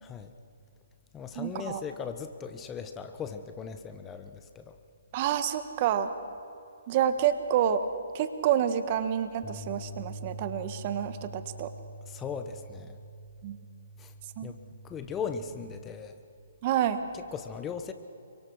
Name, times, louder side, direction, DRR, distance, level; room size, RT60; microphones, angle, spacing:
voice 1, 0.0-0.3 1.1-4.8 12.1-13.0 14.0-14.1 14.4-14.6 14.8-16.2 17.1-17.9, left 6 dB, 15° left, 8 dB, 1.2 m, -38 dB
voice 2, 1.3-1.8 5.1-6.1 6.9-7.8 8.1-11.7 13.4-13.6 14.4-14.5 16.6-17.0, right 9 dB, 40° right, 10 dB, 1.5 m, -28 dB
sound 1, 9.4-15.7, right 1 dB, 5° right, 4.9 m, -45 dB
29.5 x 24.5 x 4.8 m, 2.6 s
figure-of-eight pair, 135°, 0 cm